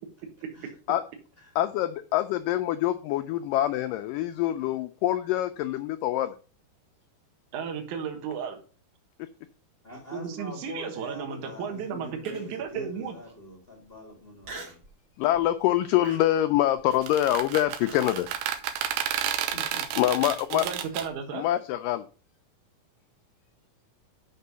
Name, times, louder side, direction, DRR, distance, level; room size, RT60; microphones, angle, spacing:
voice 1, 1.6-6.4 9.2-9.3 15.2-18.3 18.9-19.1 20.0-20.7 21.3-22.1, left 13 dB, 90° left, 9 dB, 1.9 m, -25 dB
voice 2, 7.5-8.6 10.1-13.1 20.5-21.5, right 7 dB, 60° right, 3 dB, 2.5 m, -34 dB
voice 3, 9.8-14.8 19.5-20.3, equal, 45° left, -1 dB, 0.7 m, -43 dB
Human voice, 12.2-12.7 13.2-13.3 14.4-14.9 15.3-15.6 16.0-18.1, right 3 dB, 35° right, 2.4 m, -44 dB
sound 1, 16.9-21.1, right 10 dB, 80° right, 2.6 m, -31 dB
6.5 x 6.0 x 6.8 m, 0.39 s
omnidirectional pair, 4.4 m